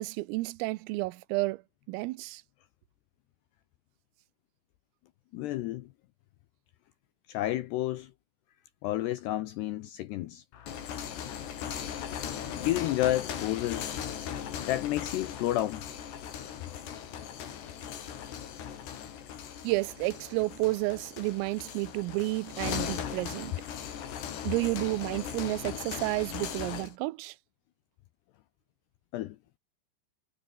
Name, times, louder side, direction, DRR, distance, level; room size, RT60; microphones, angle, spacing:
voice 1, 0.0-1.6 1.9-2.4 19.6-23.5 24.5-27.4, right 21 dB, 85° right, 3.5 m, -31 dB
voice 2, 5.3-5.9 7.3-8.1 8.8-10.4 12.6-13.9 14.6-15.8 29.1-29.4, left 14 dB, 80° left, 2.5 m, -30 dB
sound 1, 10.5-27.0, left 9 dB, 60° left, 4.7 m, -38 dB
omnidirectional pair, 5.9 m